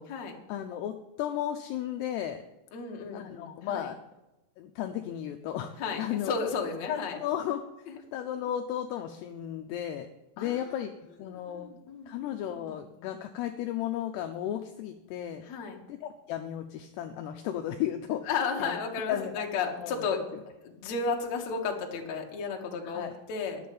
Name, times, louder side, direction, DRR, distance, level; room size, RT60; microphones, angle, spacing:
voice 1, 0.0-2.4 3.1-4.0 4.6-6.3 6.9-10.1 10.4-10.9 11.2-11.7 12.1-15.4 15.9-18.2 18.6-18.8 19.1-19.5 19.8-20.1 20.3-20.4 22.8-23.2, left 11 dB, 85° left, 6 dB, 2.3 m, -34 dB
voice 2, 2.7-3.9 5.8-7.2 10.4-10.6 11.5-12.1 12.4-12.8 15.4-15.8 18.3-20.2 20.6-23.6, left 5 dB, 60° left, 1 dB, 1.9 m, -33 dB
11.0 x 7.4 x 8.6 m, 0.98 s
omnidirectional pair, 5.6 m